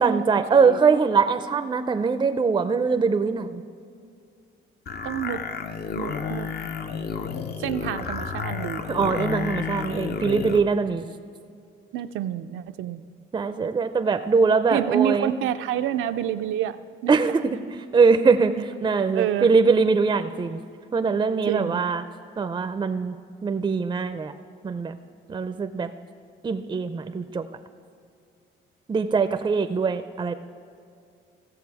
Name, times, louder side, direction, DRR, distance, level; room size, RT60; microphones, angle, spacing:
voice 1, 0.0-3.5 8.9-11.0 13.3-15.3 17.1-17.6 17.9-18.5 18.8-20.6 20.9-22.0 22.4-23.1 23.4-24.3 24.6-24.9 25.3-25.9 26.4-27.4 28.9-30.3, right 5 dB, 20° right, 9 dB, 0.4 m, -22 dB
sound 1, 4.9-10.6, left 6 dB, 50° left, 0.7 m, -31 dB
voice 2, 5.0-5.4 6.0-6.5 7.6-8.9 11.9-13.1 14.7-17.2 18.6-18.7 19.1-19.5 21.5-21.8, right 11 dB, 80° right, 10 dB, 0.5 m, -28 dB
15.5 x 6.7 x 4.8 m, 2.4 s
cardioid pair, 90°, 20 cm